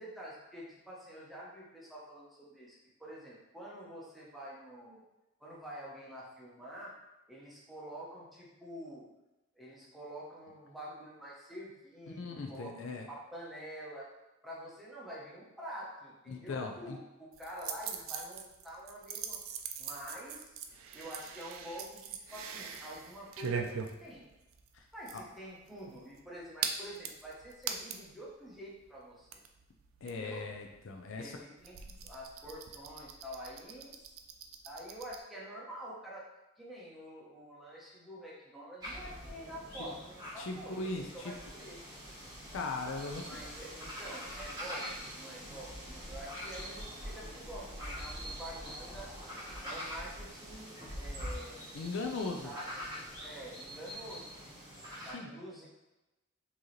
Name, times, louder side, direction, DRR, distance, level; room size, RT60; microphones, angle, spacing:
voice 1, 0.0-5.0 5.4-6.9 7.3-9.1 9.6-14.1 14.4-19.4 19.8-20.6 20.9-24.3 24.9-29.4 30.0-30.5 31.0-34.2 34.6-36.3 36.6-41.8 43.2-49.1 49.6-51.7 52.4-52.8 53.2-54.3 55.0-55.7, equal, ahead, -6 dB, 0.9 m, -47 dB
voice 2, 12.2-13.1 16.3-17.0 25.1-25.2 30.0-31.4 39.8-39.9 40.4-41.1 42.5-43.4 51.7-52.5 55.1-55.3, left 3 dB, 65° left, 3 dB, 0.4 m, -38 dB
sound 1, 17.3-28.2 28.5-28.6 28.8-35.2, right 7 dB, 85° right, 0.4 m, -42 dB
sound 2, 38.8-55.1, equal, 20° right, 1.2 m, -44 dB
4.6 x 2.9 x 3.1 m, 1.0 s
head